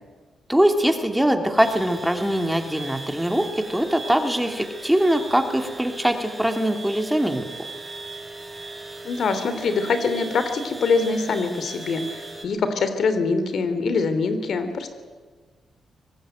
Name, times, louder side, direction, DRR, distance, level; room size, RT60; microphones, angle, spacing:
voice 1, 0.5-7.4, right 1 dB, 5° right, 5 dB, 2.7 m, -22 dB
sound 1, 1.6-12.5, right 2 dB, 20° right, 5.5 m, -38 dB
voice 2, 9.0-14.9, left 4 dB, 65° left, 10 dB, 3.1 m, -24 dB
24.0 x 19.0 x 9.2 m, 1.4 s
cardioid pair, 80°, 0 cm